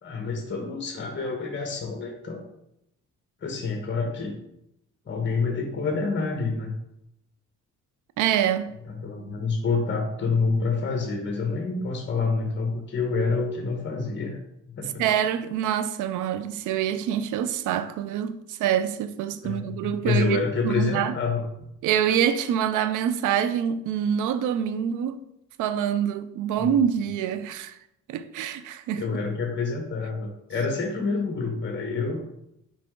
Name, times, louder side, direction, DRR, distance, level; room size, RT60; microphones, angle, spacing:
voice 1, 0.0-2.4 3.4-4.3 5.1-6.7 9.0-14.4 14.7-15.0 19.4-21.4 26.6-26.7 29.0-32.2, left 4 dB, 40° left, 1.2 m, -27 dB
voice 2, 8.2-8.8 15.0-20.4 20.6-21.1 21.8-25.2 25.6-27.8 28.1-29.2, right 9 dB, 90° right, 0.5 m, -26 dB
6.0 x 4.7 x 3.7 m
cardioid pair, 90°, 30 cm